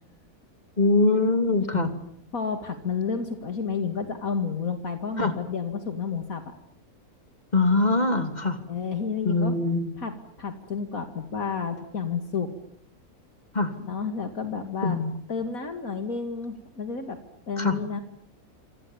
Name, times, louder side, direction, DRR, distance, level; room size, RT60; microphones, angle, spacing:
voice 1, 0.8-1.9 5.2-5.3 7.5-8.6 9.2-9.9 13.5-13.7 14.8-15.1 17.6-17.8, left 2 dB, 30° left, 9 dB, 2.9 m, -23 dB
voice 2, 2.3-6.5 8.7-9.6 10.0-12.5 13.8-15.0 15.3-17.2 17.5-18.0, left 5 dB, 70° left, 7 dB, 2.6 m, -31 dB
28.0 x 27.5 x 7.2 m, 0.68 s
omnidirectional pair, 1.5 m